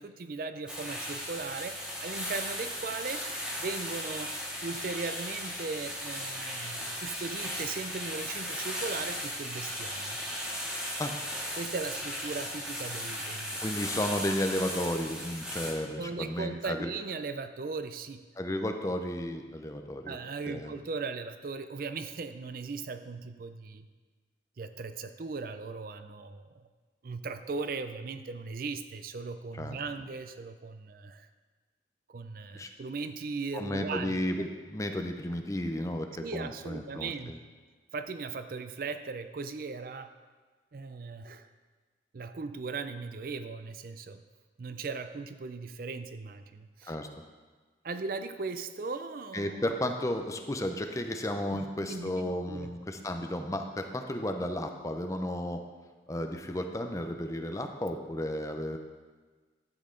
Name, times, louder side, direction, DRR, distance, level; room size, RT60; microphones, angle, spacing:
voice 1, 0.0-3.2 3.6-4.3 4.6-10.2 11.6-13.7 16.0-18.2 20.1-23.9 24.6-26.7 27.0-31.3 32.1-34.2 36.2-37.3 37.9-40.1 40.7-41.5 42.1-44.2 44.6-47.0 47.8-49.7 51.4-52.7, right 4 dB, 50° right, 10 dB, 0.4 m, -38 dB
sound 1, 0.7-15.7, equal, 5° right, 1.6 m, -36 dB
voice 2, 13.6-16.9 18.4-20.2 20.5-20.7 29.5-29.8 32.5-32.7 33.5-37.4 46.8-47.1 49.3-55.6 56.1-58.8, left 1 dB, 15° left, 5 dB, 0.6 m, -33 dB
12.0 x 7.7 x 3.8 m, 1.4 s
head